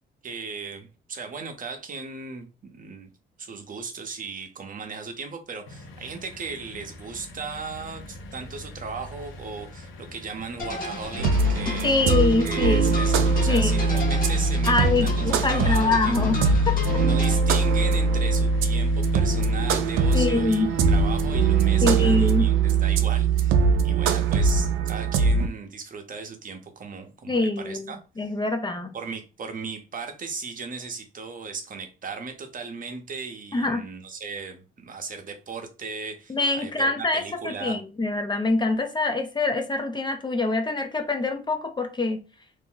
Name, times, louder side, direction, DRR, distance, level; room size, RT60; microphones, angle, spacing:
voice 1, 0.2-3.1 3.4-11.9 12.4-16.1 16.9-28.3 28.9-37.8, right 4 dB, 45° right, 0.7 m, -37 dB
sound 1, 5.6-22.2, left 3 dB, 90° left, 0.7 m, -42 dB
sound 2, 10.6-17.4, left 2 dB, 45° left, 1.0 m, -35 dB
sound 3, 11.2-25.5, right 4 dB, 85° right, 0.5 m, -22 dB
voice 2, 11.8-13.0 13.5-13.8 14.7-16.8 20.1-20.7 21.8-22.5 27.3-28.9 33.5-33.9 36.3-42.2, left 3 dB, 25° left, 0.5 m, -25 dB
2.5 x 2.1 x 3.7 m
cardioid pair, 90°, 20 cm